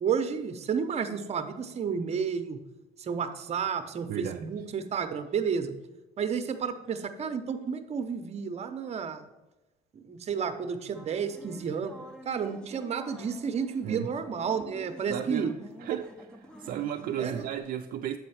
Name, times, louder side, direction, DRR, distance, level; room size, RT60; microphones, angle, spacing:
voice 1, 0.0-2.6 3.0-5.7 6.2-9.2 9.9-11.9 12.2-15.5 17.2-17.4, right 6 dB, 40° right, 0.8 m, -31 dB
voice 2, 4.1-4.5 13.8-14.1 15.1-16.1 16.6-18.2, right 10 dB, 60° right, 0.4 m, -34 dB
sound 1, 10.9-17.6, equal, 5° left, 0.7 m, -48 dB
7.8 x 4.3 x 5.7 m
cardioid pair, 110°, 17 cm